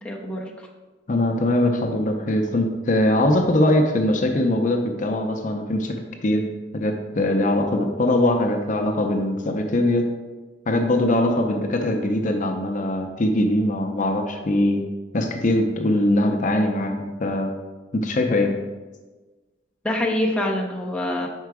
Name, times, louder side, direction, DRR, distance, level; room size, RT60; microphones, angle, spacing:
voice 1, 0.0-0.7 19.8-21.3, left 1 dB, 5° left, -2 dB, 0.6 m, -25 dB
voice 2, 1.1-5.9 6.2-6.4 6.7-10.0 10.7-14.8 15.1-17.5 17.9-18.5, left 1 dB, 45° left, 3 dB, 0.5 m, -21 dB
4.8 x 4.5 x 4.7 m, 1.3 s
head